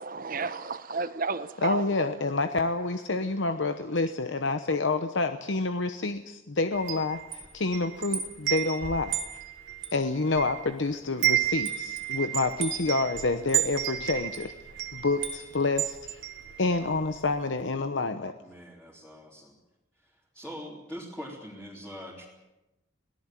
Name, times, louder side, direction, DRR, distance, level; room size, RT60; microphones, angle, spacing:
voice 1, 0.0-2.1, right 4 dB, 45° right, 11 dB, 1.0 m, -32 dB
voice 2, 1.6-9.2 9.9-14.5 14.9-16.2 16.6-18.3, left 3 dB, 70° left, 8 dB, 1.0 m, -28 dB
Wind chime, 6.7-10.8 11.1-17.0, right 12 dB, 75° right, 2.9 m, -32 dB
voice 3, 18.4-19.5 19.9-22.3, equal, 5° left, -5 dB, 3.4 m, -43 dB
24.0 x 18.0 x 7.6 m, 1.0 s
head